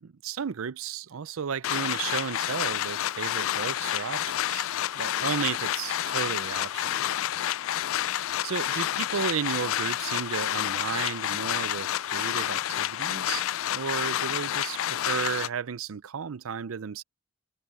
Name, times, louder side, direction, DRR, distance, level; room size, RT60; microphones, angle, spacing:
voice 1, 0.2-4.7 4.9-7.1 7.9-13.5 13.7-17.0, right 7 dB, 75° right, 0.5 m, -33 dB
sound 1, 1.6-15.5, left 12 dB, 65° left, 0.3 m, -29 dB
head